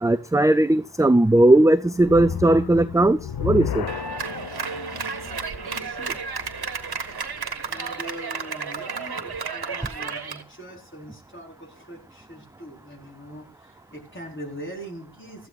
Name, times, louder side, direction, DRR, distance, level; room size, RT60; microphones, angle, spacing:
voice 1, 0.0-3.8, right 1 dB, 10° right, 12 dB, 0.5 m, -18 dB
sound 1, 2.0-7.3, left 7 dB, 70° left, 0.8 m, -33 dB
Clapping, 3.9-10.4, right 5 dB, 70° right, 1.4 m, -32 dB
voice 2, 5.5-6.5 7.6-15.5, equal, 30° left, 1 dB, 4.7 m, -41 dB
15.0 x 13.5 x 2.5 m, 0.36 s
cardioid pair, 40°, 39 cm